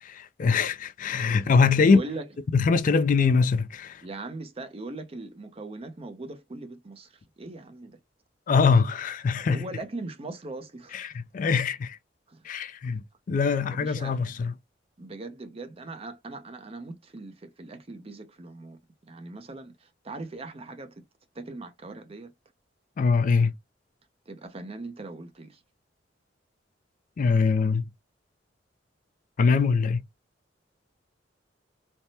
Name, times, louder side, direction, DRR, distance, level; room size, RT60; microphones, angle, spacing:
voice 1, 0.0-2.0 2.5-4.0 8.5-9.6 10.9-12.0 12.4-14.5 23.0-23.5 27.2-27.8 29.4-30.0, left 5 dB, 45° left, 0.3 m, -23 dB
voice 2, 1.8-2.3 4.0-8.0 9.5-11.0 12.3-12.5 13.7-14.3 15.0-18.8 19.1-21.0 21.3-22.3 24.3-25.6, right 2 dB, 30° right, 0.6 m, -40 dB
3.3 x 2.0 x 2.7 m
head